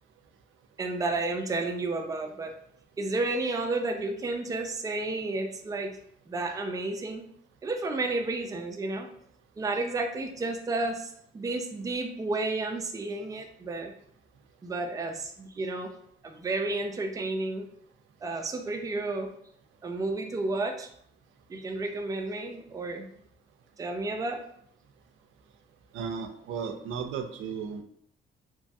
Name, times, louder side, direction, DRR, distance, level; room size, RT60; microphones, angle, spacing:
voice 1, 0.8-2.5 3.0-5.9 6.3-7.2 7.6-9.1 9.6-13.9 14.6-16.0 16.2-17.7 18.2-19.3 19.8-20.9 21.5-23.1 23.8-24.4, right 2 dB, 20° right, 4 dB, 0.4 m, -31 dB
voice 2, 25.9-27.8, right 6 dB, 80° right, 6 dB, 0.4 m, -35 dB
3.0 x 2.2 x 2.6 m, 0.67 s
cardioid pair, 90°, 20 cm